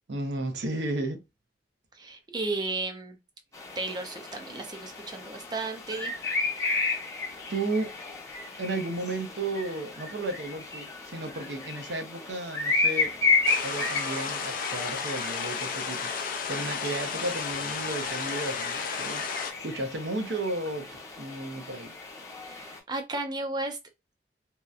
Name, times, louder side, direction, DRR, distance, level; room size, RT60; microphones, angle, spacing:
voice 1, 0.1-1.2 6.6-6.9 7.5-7.9 8.6-13.1 13.6-16.1 16.5-19.2 19.6-21.9, right 2 dB, 70° right, 0.7 m, -33 dB
voice 2, 1.9-3.2 3.8-6.1 22.3-23.8, right 2 dB, 25° right, 0.5 m, -34 dB
sound 1, 3.5-22.8, left 3 dB, 20° left, 0.7 m, -33 dB
sound 2, 13.0-21.7, right 2 dB, 90° right, 1.3 m, -49 dB
sound 3, 13.4-19.5, left 6 dB, 50° left, 0.4 m, -33 dB
2.8 x 2.1 x 2.4 m
head